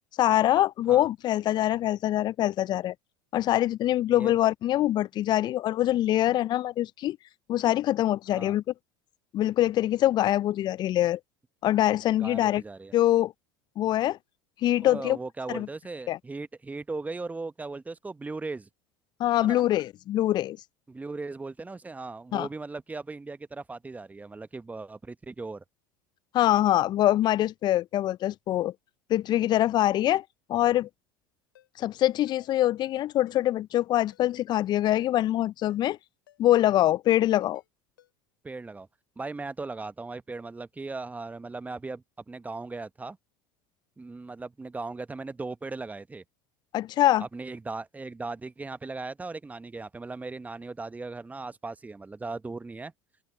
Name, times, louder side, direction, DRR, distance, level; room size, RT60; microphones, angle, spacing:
voice 1, 0.2-2.9 3.3-7.2 7.5-8.7 9.3-11.2 11.6-12.6 12.9-13.3 13.8-14.2 14.6-15.2 15.5-15.7 16.1-16.2 19.2-20.6 22.3-22.5 26.3-28.7 29.1-30.2 30.5-30.9 31.8-36.0 36.4-37.6 46.7-47.3, left 13 dB, 40° left, 0.5 m, -24 dB
voice 2, 12.2-12.9 14.8-18.7 19.4-19.7 20.9-25.6 38.4-38.9 39.2-43.2 44.0-46.2 47.2-52.9, right 3 dB, 15° right, 1.0 m, -38 dB
Ringtone, 31.5-31.7 32.3-32.5 32.8-33.0 33.3-33.4 34.0-34.2 34.5-34.7 35.0-35.1 35.7-36.0 36.3-36.4 36.7-36.8 37.4-37.7 38.0-38.1, left 12 dB, 80° left, 7.7 m, -59 dB
open air
hypercardioid pair, 75°, 11 cm